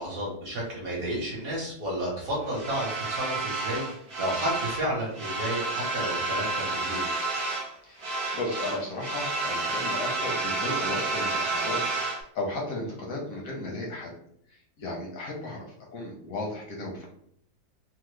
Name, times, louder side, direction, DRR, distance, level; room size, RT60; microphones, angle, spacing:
voice 1, 0.0-7.0, right 1 dB, 55° right, -3 dB, 1.1 m, -32 dB
sound 1, 2.5-4.9 5.1-7.7 8.0-12.2, right 3 dB, 80° right, 0.5 m, -30 dB
voice 2, 7.8-14.1 14.5-17.1, left 2 dB, 65° left, -1 dB, 0.9 m, -35 dB
3.4 x 2.0 x 3.1 m, 0.69 s
omnidirectional pair, 2.1 m